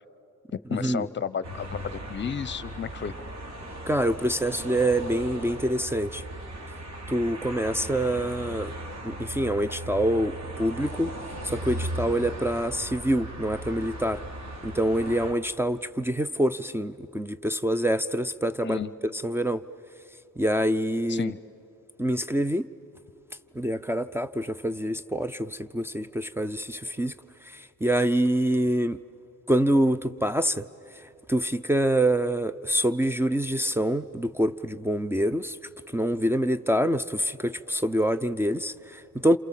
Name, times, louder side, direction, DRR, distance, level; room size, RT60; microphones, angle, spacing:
voice 1, 0.7-3.1 18.6-18.9 21.1-21.4, left 7 dB, 40° left, 0.8 m, -32 dB
sound 1, 1.4-15.3, right 1 dB, 60° right, 3.9 m, -37 dB
voice 2, 3.9-6.2 7.1-8.7 9.0-11.1 11.4-14.2 14.6-18.8 19.2-19.6 20.4-21.3 22.0-22.7 23.6-27.1 27.5-29.0 29.5-30.6 31.3-35.6 35.9-39.4, right 1 dB, 10° right, 0.5 m, -26 dB
28.0 x 27.5 x 7.5 m
cardioid pair, 90°, 30 cm